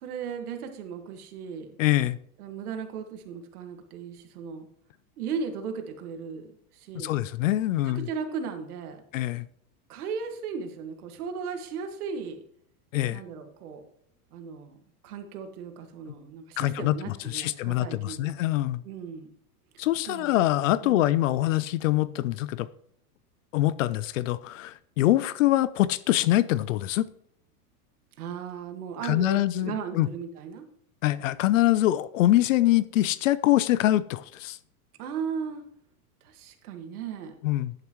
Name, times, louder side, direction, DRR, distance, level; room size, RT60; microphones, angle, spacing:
voice 1, 0.0-1.7 2.4-4.7 5.2-7.2 8.0-9.0 9.9-12.4 13.1-13.8 14.3-14.8 15.0-18.3 18.8-19.3 20.1-20.4 20.8-21.1 28.2-30.7 35.0-35.6 36.2-37.4, right 6 dB, 70° right, 1.9 m, -36 dB
voice 2, 1.8-2.2 6.9-8.1 9.1-9.5 12.9-13.2 16.6-18.8 19.8-22.7 23.5-27.1 29.0-30.1 31.0-34.6 37.4-37.7, left 15 dB, 55° left, 0.5 m, -24 dB
10.5 x 9.6 x 3.1 m
supercardioid pair, 180°, 46 cm